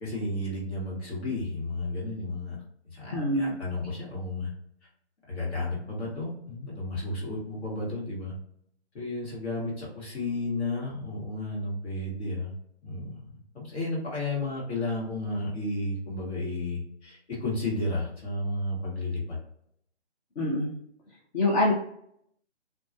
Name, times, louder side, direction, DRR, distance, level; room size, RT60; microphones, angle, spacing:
voice 1, 0.0-2.6 2.9-4.5 5.3-8.3 8.9-12.5 12.8-19.4, left 2 dB, 70° left, -5 dB, 1.2 m, -32 dB
voice 2, 3.1-3.5 20.4-20.8 21.3-21.7, left 1 dB, 40° left, -4 dB, 0.6 m, -25 dB
2.3 x 2.2 x 2.5 m, 0.71 s
hypercardioid pair, 150°, 34 cm